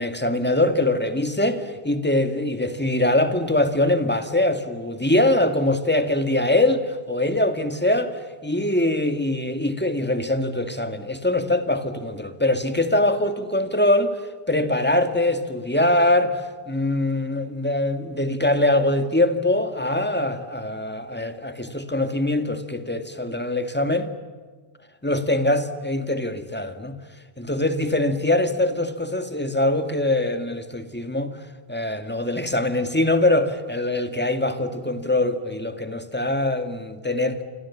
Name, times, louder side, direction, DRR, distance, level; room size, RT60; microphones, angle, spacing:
voice 1, 0.0-14.1 14.5-24.1 25.0-26.9 27.4-31.3 31.7-37.4, left 1 dB, 10° left, 8 dB, 2.0 m, -23 dB
29.5 x 25.0 x 7.3 m, 1.5 s
omnidirectional pair, 1.1 m